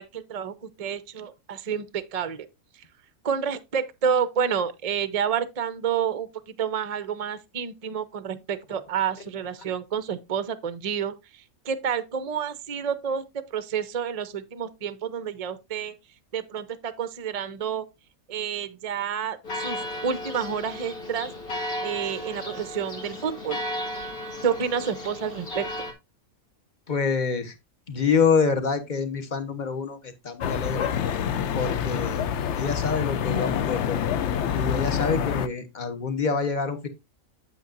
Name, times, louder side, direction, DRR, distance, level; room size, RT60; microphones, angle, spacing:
voice 1, 0.0-2.5 3.2-6.3 6.6-16.0 16.3-17.9 18.3-21.3 21.8-23.6 24.4-25.7, right 7 dB, 40° right, 0.5 m, -29 dB
Church bell, 19.4-25.9, left 1 dB, 85° left, 2.4 m, -34 dB
voice 2, 26.9-27.5 27.9-30.9 31.5-32.3 32.5-34.0 34.5-36.9, left 5 dB, 35° left, 1.1 m, -26 dB
sound 1, 30.4-35.5, left 8 dB, 60° left, 0.8 m, -27 dB
8.3 x 8.3 x 2.5 m
omnidirectional pair, 1.5 m